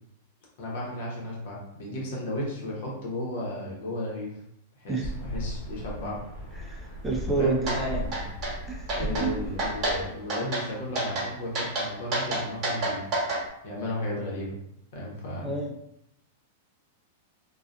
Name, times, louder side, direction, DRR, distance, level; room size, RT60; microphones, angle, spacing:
voice 1, 0.6-4.3 4.8-6.2 7.3-8.2 8.9-13.0 13.6-14.6 14.9-15.5, left 1 dB, 65° left, -3 dB, 1.0 m, -34 dB
sound 1, 5.0-10.1, equal, 35° left, 1.3 m, -36 dB
voice 2, 6.6-8.0 8.7-9.3 15.4-15.8, right 4 dB, 10° right, -1 dB, 0.5 m, -29 dB
sound 2, 7.7-7.8 8.1-8.5 8.9-9.3 9.6-10.0 10.3-10.6 11.0-11.3 11.5-13.4, right 2 dB, 40° right, 1.2 m, -28 dB
2.5 x 2.3 x 2.3 m, 0.78 s
hypercardioid pair, 110°, 0 cm